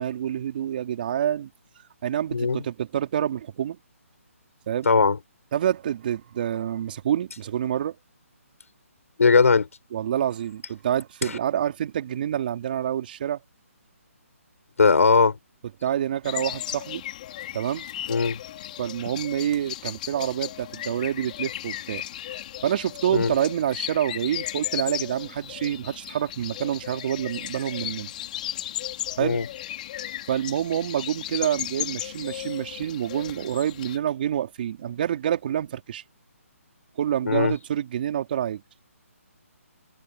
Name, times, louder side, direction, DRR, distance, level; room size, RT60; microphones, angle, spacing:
voice 1, 0.0-1.5 2.0-3.8 4.7-4.9 5.5-8.0 9.9-13.4 15.8-17.0 17.5-17.9 18.8-22.0 22.6-28.1 29.2-29.4 30.3-36.0 37.0-38.6, right 10 dB, 40° right, 3.6 m, -27 dB
voice 2, 2.3-2.6 4.9-5.2 9.2-9.7 11.2-11.4 14.8-15.4 18.1-18.4 23.1-23.4 29.2-29.5 37.3-37.5, left 4 dB, 75° left, 5.7 m, -19 dB
sound 1, 16.2-34.0, left 13 dB, 35° left, 4.6 m, -35 dB
hypercardioid pair, 160°, 8 cm